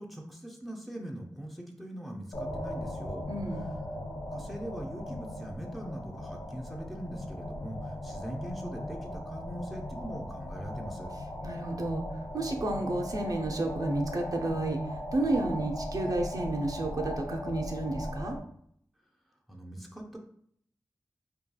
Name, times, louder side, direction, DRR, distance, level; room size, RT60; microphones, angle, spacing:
voice 1, 0.0-3.3 4.3-11.1 19.5-20.2, right 1 dB, ahead, 0 dB, 0.5 m, -41 dB
sound 1, 2.3-18.4, left 1 dB, 55° left, 0.4 m, -38 dB
voice 2, 3.3-3.7 11.4-18.4, right 2 dB, 60° right, 2 dB, 0.4 m, -31 dB
2.7 x 2.3 x 2.2 m, 0.65 s
wide cardioid pair, 60°, 7 cm